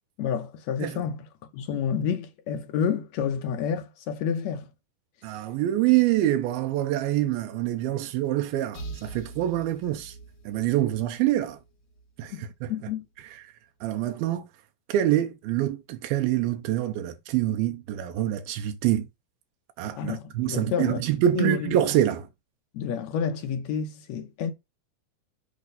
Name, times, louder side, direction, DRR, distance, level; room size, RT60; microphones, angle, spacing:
voice 1, 0.2-1.3 1.5-4.7 12.3-12.4 12.7-13.0 19.9-21.0 21.3-21.8 22.7-24.5, left 7 dB, 80° left, 1.6 m, -29 dB
voice 2, 5.2-10.2 10.5-11.6 12.2-12.7 13.8-14.5 14.9-19.1 19.8-22.3, right 13 dB, 90° right, 2.6 m, -25 dB
sound 1, 8.7-12.4, right 3 dB, 60° left, 1.3 m, -44 dB
8.4 x 3.7 x 5.4 m
omnidirectional pair, 4.3 m